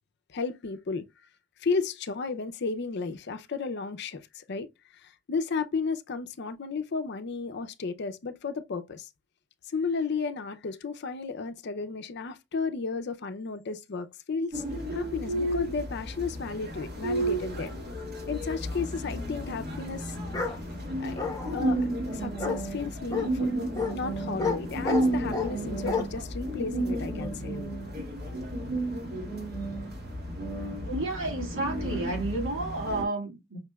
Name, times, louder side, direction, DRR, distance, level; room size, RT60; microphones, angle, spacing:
voice 1, 0.3-1.0 1.6-4.7 4.9-9.1 9.7-14.6 14.9-17.7 18.3-20.1 21.0-23.5 23.9-27.5, left 4 dB, 55° left, 0.5 m, -33 dB
sound 1, 14.5-33.0, right 1 dB, 50° right, 2.1 m, -32 dB
Bark, 20.3-20.6 21.2-21.7 22.4-22.6 23.1-23.3 23.8-23.9 24.4-24.6 24.8-25.5 25.9-26.0, left 4 dB, 20° left, 1.1 m, -29 dB
voice 2, 30.9-33.6, right 2 dB, 75° right, 1.9 m, -31 dB
5.7 x 3.2 x 2.3 m
head